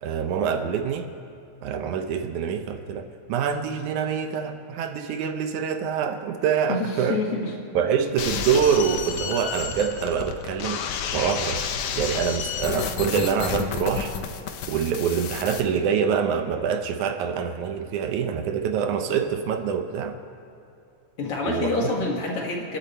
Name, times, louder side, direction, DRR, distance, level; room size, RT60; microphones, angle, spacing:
voice 1, 0.0-1.1 1.6-7.2 7.8-10.8 11.1-11.6 12.0-14.1 14.7-20.2 21.4-21.9, right 7 dB, 75° right, 7 dB, 2.2 m, -25 dB
voice 2, 6.7-7.5 21.2-22.8, left 3 dB, 50° left, 0 dB, 2.3 m, -27 dB
sound 1, 8.2-15.6, left 7 dB, 75° left, 2.4 m, -31 dB
29.0 x 10.5 x 4.3 m, 2.7 s
omnidirectional pair, 3.6 m